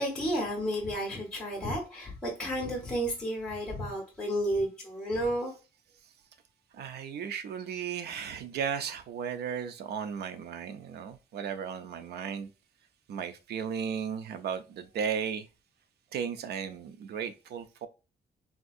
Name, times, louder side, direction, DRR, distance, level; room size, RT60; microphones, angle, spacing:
voice 1, 0.0-5.5, equal, 5° left, 1.2 m, -32 dB
voice 2, 6.7-12.5 13.1-15.5 16.1-17.9, right 7 dB, 90° right, 0.5 m, -35 dB
3.6 x 2.6 x 2.4 m
wide cardioid pair, 165°, 16 cm